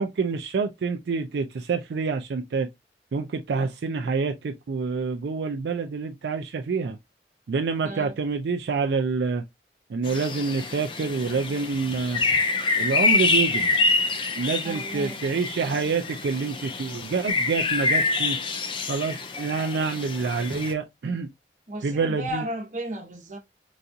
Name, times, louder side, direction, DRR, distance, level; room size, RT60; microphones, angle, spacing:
voice 1, 0.0-2.7 3.1-7.0 7.5-9.4 9.9-12.2 12.8-13.8 14.4-18.4 18.9-21.3 21.8-22.4, right 4 dB, 80° right, 0.4 m, -27 dB
voice 2, 7.8-8.2 14.6-15.3 21.7-23.4, right 1 dB, 45° right, 0.9 m, -34 dB
sound 1, 10.0-20.7, left 3 dB, 30° left, 0.4 m, -26 dB
4.0 x 2.4 x 2.6 m
head